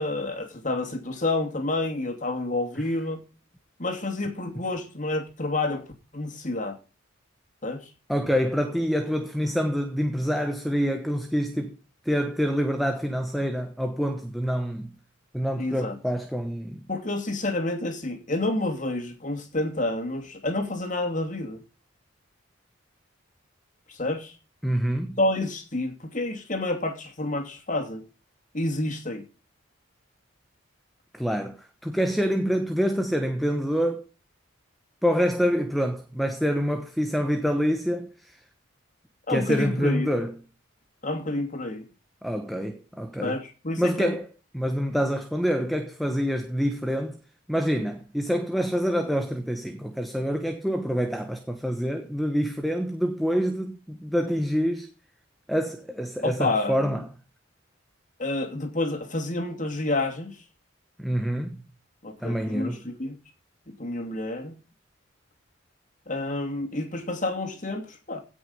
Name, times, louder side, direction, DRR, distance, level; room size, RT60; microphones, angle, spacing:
voice 1, 0.0-3.2 3.8-5.9 6.1-6.8 7.6-7.9 15.6-16.0 16.9-21.6 23.9-24.3 25.2-28.0 28.5-29.2 39.3-40.1 41.0-41.8 43.2-44.2 56.2-57.0 58.2-60.4 62.0-63.2 63.7-64.6 66.1-68.2, left 2 dB, 40° left, 2.7 m, -29 dB
voice 2, 8.1-11.8 12.0-14.9 15.3-16.8 24.6-25.2 31.1-34.0 35.0-38.4 39.3-40.4 42.2-43.4 43.8-44.3 44.5-47.2 47.5-54.9 55.5-57.0 61.0-61.6 62.2-62.8, equal, ahead, 1.2 m, -26 dB
17.0 x 6.4 x 5.5 m
head